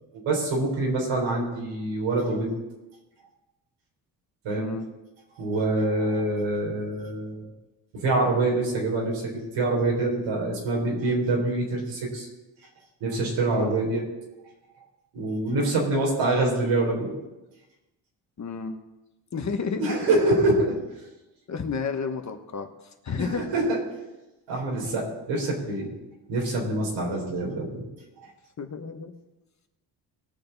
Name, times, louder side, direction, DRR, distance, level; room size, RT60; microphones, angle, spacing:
voice 1, 0.3-2.5 4.4-4.7 5.3-7.5 7.9-12.3 13.0-14.0 15.1-17.1 19.8-20.8 23.2-23.8 24.5-25.9 26.3-27.9 28.2-28.3, right 2 dB, 90° right, -1 dB, 4.0 m, -25 dB
voice 2, 4.6-4.9 13.5-13.8 18.4-18.8 19.3-20.0 21.5-23.4 28.6-29.1, left 5 dB, 40° left, 6 dB, 1.3 m, -31 dB
19.5 x 6.7 x 4.1 m, 1.0 s
cardioid pair, 95°, 44 cm